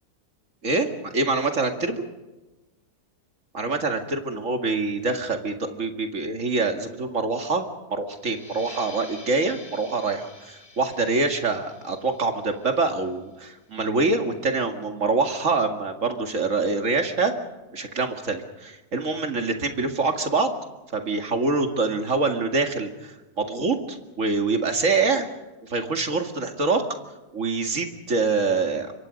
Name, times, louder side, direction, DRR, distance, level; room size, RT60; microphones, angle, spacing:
voice 1, 0.6-2.0 3.5-7.6 7.9-17.3 17.7-20.5 20.9-25.3 25.6-26.8 27.3-28.9, right 3 dB, 50° right, 5 dB, 2.5 m, -25 dB
sound 1, 8.2-13.4, left 2 dB, 35° left, 4.5 m, -47 dB
26.0 x 23.5 x 5.3 m, 1.1 s
omnidirectional pair, 1.7 m